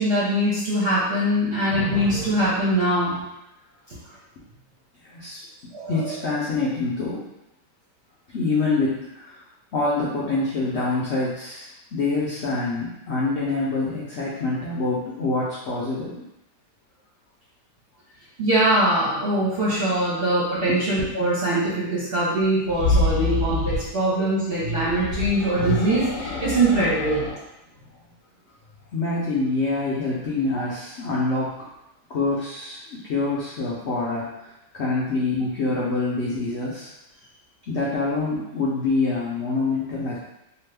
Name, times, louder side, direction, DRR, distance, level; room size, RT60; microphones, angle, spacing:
voice 1, 0.0-3.2 5.7-6.1 18.4-27.2, right 1 dB, 50° right, -8 dB, 0.7 m, -22 dB
voice 2, 5.0-5.4 5.9-7.2 8.3-9.4 9.7-16.2 20.7-20.8 28.9-31.6 32.1-34.3 34.7-36.9 37.7-40.2, left 3 dB, 75° left, -6 dB, 0.6 m, -26 dB
sound 1, 22.6-23.9 24.8-27.4, left 2 dB, 60° left, 0.9 m, -26 dB
2.8 x 2.3 x 3.3 m, 0.89 s
omnidirectional pair, 1.8 m